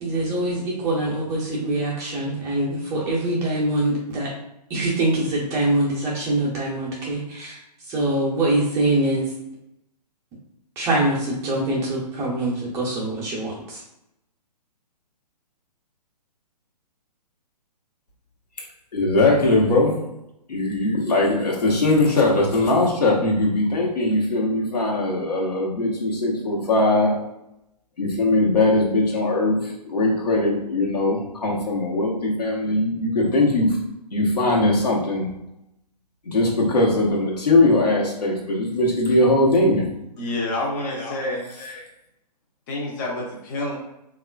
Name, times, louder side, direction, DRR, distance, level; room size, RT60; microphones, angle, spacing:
voice 1, 0.0-4.3 4.7-7.6 7.9-9.3 10.8-13.8, right 1 dB, 15° right, -5 dB, 0.5 m, -24 dB
voice 2, 18.9-20.0 20.5-27.1 28.0-33.8 34.1-35.3 36.3-39.8 40.9-41.1 41.6-41.8, left 2 dB, 70° left, -3 dB, 1.0 m, -20 dB
voice 3, 40.2-41.7 42.7-43.7, left 2 dB, 30° left, -2 dB, 0.6 m, -28 dB
3.5 x 2.3 x 2.2 m, 0.85 s
figure-of-eight pair, 125°, 21 cm